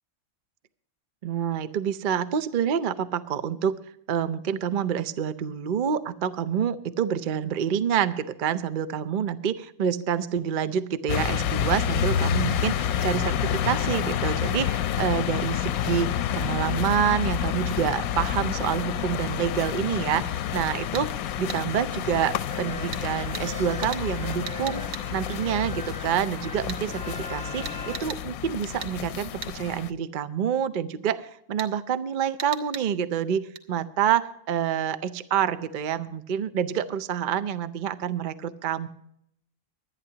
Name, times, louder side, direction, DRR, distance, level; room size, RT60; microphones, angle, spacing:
voice 1, 1.2-3.8 4.1-21.1 21.4-24.8 25.1-33.4 33.7-38.9, right 8 dB, 50° right, 12 dB, 0.6 m, -27 dB
sound 1, 11.1-29.9, left 10 dB, 90° left, 1.1 m, -29 dB
sound 2, 20.9-21.1 21.5-21.6 22.9-23.1 23.3-23.5 23.8-24.1 24.5-25.1 26.7-26.8 27.6-28.2 28.8-28.9 29.4-29.5 31.6-31.7 32.4-32.9 33.6-33.7, right 6 dB, 65° right, 1.4 m, -37 dB
sound 3, 22.5-28.0, left 1 dB, 5° left, 1.5 m, -40 dB
24.0 x 9.7 x 2.8 m, 0.72 s
omnidirectional pair, 1.5 m